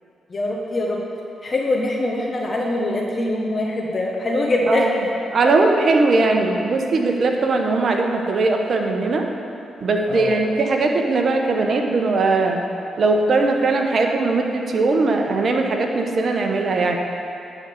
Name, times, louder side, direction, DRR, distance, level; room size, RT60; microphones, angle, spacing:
voice 1, 0.3-1.0 1.4-4.9 10.1-10.4, left 2 dB, 40° left, -2 dB, 1.3 m, -23 dB
voice 2, 5.3-9.3 9.8-12.6 13.0-17.0, right 3 dB, 60° right, 3 dB, 1.0 m, -19 dB
11.0 x 4.0 x 7.2 m, 2.7 s
supercardioid pair, 60°, 0 cm